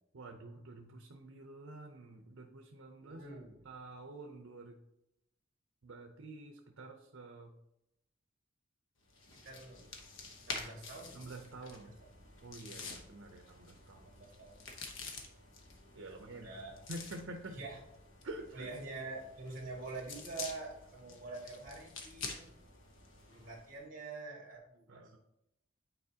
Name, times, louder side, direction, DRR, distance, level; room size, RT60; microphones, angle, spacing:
voice 1, 0.1-3.2 3.6-4.7 5.8-7.5 11.1-12.0 12.4-14.2 15.9-16.5 16.9-17.6 18.2-18.7 24.9-25.2, right 2 dB, 75° right, 4 dB, 0.7 m, -48 dB
voice 2, 3.0-3.7 9.3-9.9 10.4-11.2 11.7-11.9 12.7-13.0 14.1-14.6 16.3-16.8 17.5-17.8 18.5-22.5 23.3-25.0, right 3 dB, 45° right, -2 dB, 1.7 m, -46 dB
sound 1, 9.1-23.7, left 4 dB, 75° left, 0.9 m, -49 dB
9.1 x 4.2 x 2.8 m, 0.85 s
head